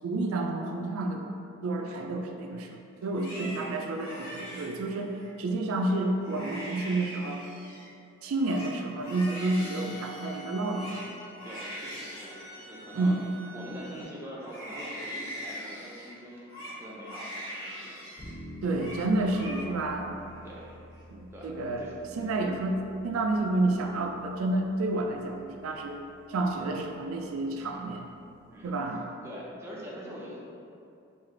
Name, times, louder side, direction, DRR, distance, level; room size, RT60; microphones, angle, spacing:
voice 1, 0.0-1.2 1.6-5.1 5.4-7.4 8.2-10.9 12.9-13.2 18.6-20.1 21.1-21.9 22.2-26.0 26.3-28.0 28.6-29.1, right 2 dB, 85° right, 2 dB, 0.3 m, -30 dB
Crying sobbing, 3.0-5.3 5.8-5.9 6.2-7.9 8.2-14.0 14.4-18.3 18.6-19.0 19.3-20.0 20.3-21.0, equal, 70° left, 1.2 m, -42 dB
voice 2, 3.3-3.6 11.4-13.2 13.5-18.0 20.4-20.7 21.3-21.5 21.8-22.3 27.5-27.9 28.5-30.4, equal, 10° right, -5 dB, 0.4 m, -44 dB
sound 1, 9.0-14.0, right 2 dB, 5° left, 1.1 m, -47 dB
sound 2, 18.2-28.9, left 1 dB, 30° left, 0.9 m, -50 dB
3.1 x 2.4 x 3.7 m, 2.6 s
head